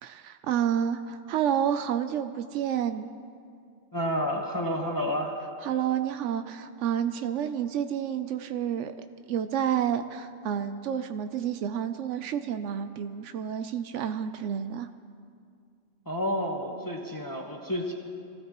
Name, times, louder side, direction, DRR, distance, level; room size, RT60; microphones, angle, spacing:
voice 1, 0.0-3.1 5.6-14.9, right 9 dB, 85° right, 9 dB, 0.9 m, -29 dB
voice 2, 3.9-5.3 16.1-17.9, equal, 20° left, 0 dB, 1.1 m, -30 dB
24.0 x 16.0 x 3.0 m, 2.3 s
omnidirectional pair, 1.2 m